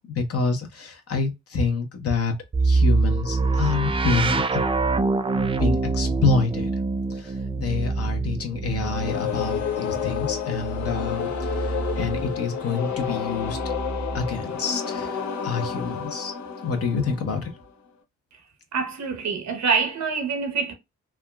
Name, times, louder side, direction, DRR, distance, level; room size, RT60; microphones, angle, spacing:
voice 1, 0.1-2.3 2.6-4.6 5.6-6.7 7.1-13.6 14.1-16.3 16.6-17.5, left 4 dB, 55° left, 0.9 m, -27 dB
sound 1, 2.5-12.3 13.4-14.4, right 3 dB, 20° right, 0.4 m, -25 dB
sound 2, 8.8-17.7, left 7 dB, 70° left, 0.7 m, -30 dB
voice 2, 18.7-20.7, right 5 dB, 70° right, 1.0 m, -25 dB
3.5 x 2.3 x 2.2 m
cardioid pair, 70°, 29 cm